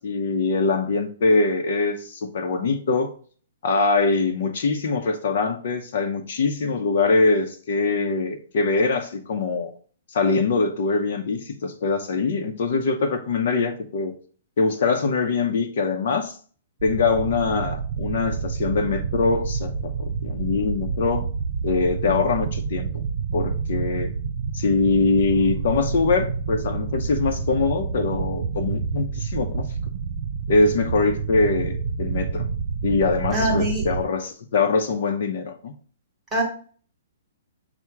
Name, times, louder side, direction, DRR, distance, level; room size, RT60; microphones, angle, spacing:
voice 1, 0.0-3.1 3.6-9.7 10.1-14.1 14.6-16.3 16.8-21.3 21.6-23.0 23.3-24.1 24.5-29.7 30.5-32.5 32.8-35.7, left 4 dB, 55° left, 0.6 m, -23 dB
sound 1, 16.8-34.0, right 5 dB, 55° right, 0.3 m, -28 dB
voice 2, 33.3-33.9 36.3-36.4, right 1 dB, 10° right, 1.0 m, -23 dB
5.7 x 2.0 x 4.6 m
hypercardioid pair, 170°, 0 cm